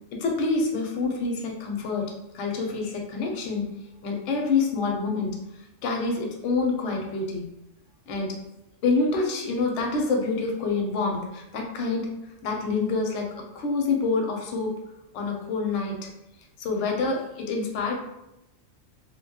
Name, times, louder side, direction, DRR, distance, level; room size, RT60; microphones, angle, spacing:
voice 1, 0.2-3.7 4.0-5.4 5.8-7.5 8.1-8.4 8.8-12.1 12.4-13.3 13.5-14.7 15.1-16.0 16.6-17.9, left 3 dB, 70° left, 1 dB, 0.9 m, -27 dB
2.7 x 2.2 x 2.8 m, 0.88 s
omnidirectional pair, 1.3 m